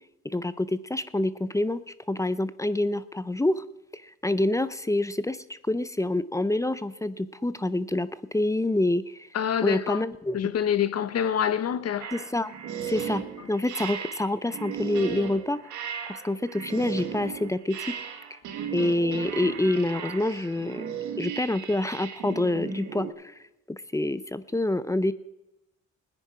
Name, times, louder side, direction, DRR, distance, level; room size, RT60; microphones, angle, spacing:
voice 1, 0.2-3.6 3.9-9.3 9.6-10.5 12.1-12.5 12.9-13.2 13.5-15.6 16.1-17.8 18.3-18.4 18.7-20.8 21.2-23.3 23.7-25.1, left 1 dB, 10° left, 0.5 m, -27 dB
voice 2, 9.3-10.0 10.3-12.1, left 9 dB, 55° left, 0.9 m, -26 dB
sound 1, 12.0-23.1, right 8 dB, 80° right, 1.7 m, -36 dB
17.5 x 9.8 x 4.8 m
cardioid pair, 90°, 30 cm